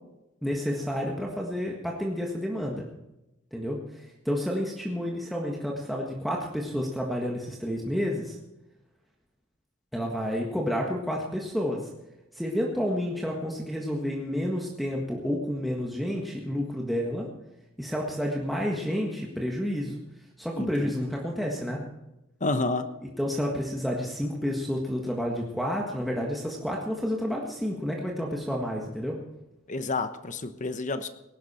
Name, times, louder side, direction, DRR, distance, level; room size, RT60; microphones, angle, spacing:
voice 1, 0.4-2.8 3.5-8.4 9.9-11.9 12.3-17.3 17.8-20.0 20.4-21.8 23.2-29.2, equal, ahead, -2 dB, 1.6 m, -30 dB
voice 2, 20.6-20.9 22.4-22.9 29.7-31.1, left 3 dB, 40° left, 10 dB, 1.1 m, -29 dB
19.0 x 12.0 x 4.4 m, 0.94 s
head